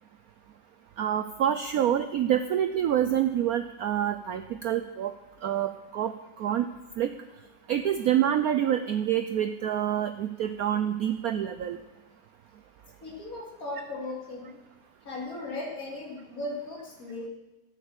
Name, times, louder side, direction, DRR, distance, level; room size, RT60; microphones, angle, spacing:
voice 1, 1.0-5.1 5.4-6.1 6.4-6.7 7.0-7.1 7.7-11.8, right 10 dB, 85° right, 8 dB, 0.8 m, -27 dB
voice 2, 13.0-14.5 15.0-17.3, left 2 dB, 45° left, -2 dB, 3.3 m, -37 dB
13.5 x 8.8 x 6.7 m, 1.1 s
omnidirectional pair, 2.2 m